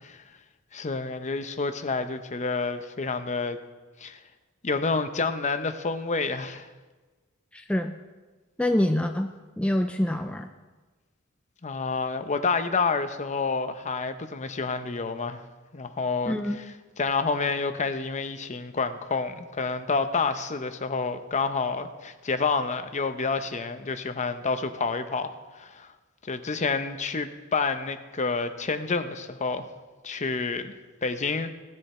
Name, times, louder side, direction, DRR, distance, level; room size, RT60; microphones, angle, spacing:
voice 1, 0.7-3.6 4.0-4.2 4.6-6.7 11.6-15.4 15.7-25.9 26.2-29.7 30.0-30.7 31.0-31.5, left 4 dB, 35° left, 9 dB, 0.7 m, -29 dB
voice 2, 7.5-7.9 8.6-9.3 9.6-10.5 16.3-16.6, left 1 dB, 5° left, 5 dB, 0.4 m, -25 dB
16.5 x 9.8 x 4.3 m, 1.3 s
head